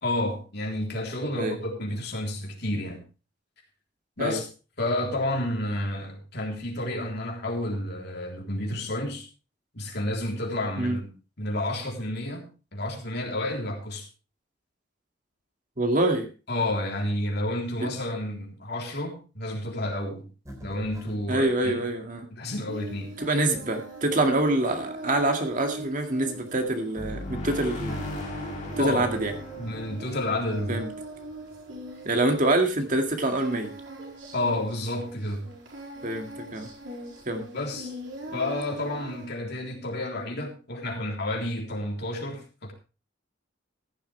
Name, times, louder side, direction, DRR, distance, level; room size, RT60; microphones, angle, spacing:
voice 1, 0.0-3.0 4.2-4.4 4.8-9.2 9.7-11.1 11.4-14.0 16.5-20.3 20.6-21.8 22.3-23.2 28.8-29.0 29.6-30.8 34.3-35.5 37.5-37.9 38.3-42.7, left 1 dB, 60° left, 1 dB, 3.6 m, -30 dB
voice 2, 15.8-16.3 17.8-17.9 21.3-22.3 23.2-28.0 28.8-29.3 30.7-30.9 32.1-33.7 36.0-36.7 37.3-37.4, right 2 dB, 45° right, 5 dB, 2.1 m, -25 dB
sound 1, 20.4-21.6, equal, 15° right, 3.9 m, -45 dB
Singing, 22.7-39.3, right 1 dB, 75° right, 4.1 m, -41 dB
sound 2, 26.9-31.6, left 1 dB, 40° left, 3.3 m, -37 dB
15.0 x 11.5 x 3.3 m, 0.33 s
head